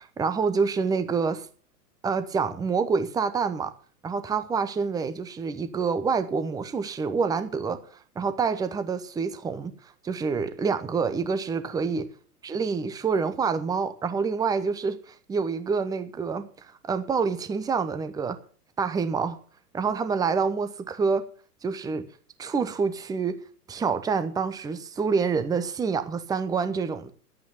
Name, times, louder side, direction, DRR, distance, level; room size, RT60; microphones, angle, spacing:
voice 1, 0.0-1.5 2.0-3.7 4.0-7.8 8.2-12.1 12.4-18.4 18.8-19.4 19.7-21.3 21.6-22.1 22.4-23.4 23.7-27.1, right 5 dB, 10° right, 10 dB, 0.9 m, -27 dB
12.0 x 8.9 x 7.2 m, 0.42 s
figure-of-eight pair, 110°, 48 cm